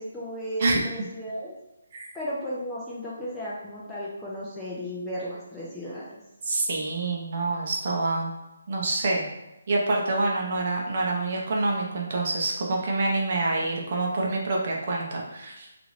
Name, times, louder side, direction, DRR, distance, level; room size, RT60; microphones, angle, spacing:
voice 1, 0.0-1.5 2.1-6.2, equal, 5° left, -8 dB, 0.3 m, -34 dB
voice 2, 6.4-8.3 8.7-9.3 9.7-15.7, right 2 dB, 35° right, -2 dB, 0.6 m, -26 dB
2.9 x 2.5 x 3.0 m, 0.94 s
hypercardioid pair, 170°, 0 cm